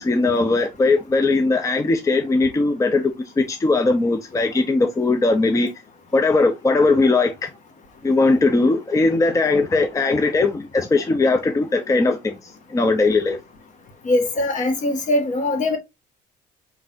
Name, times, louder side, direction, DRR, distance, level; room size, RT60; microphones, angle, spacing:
voice 1, 0.0-5.7 6.1-7.5 8.0-13.4, left 3 dB, 20° left, 0.5 m, -19 dB
voice 2, 14.0-15.8, left 2 dB, 45° left, 1.3 m, -21 dB
4.5 x 3.8 x 2.5 m
cardioid pair, 110°, 17 cm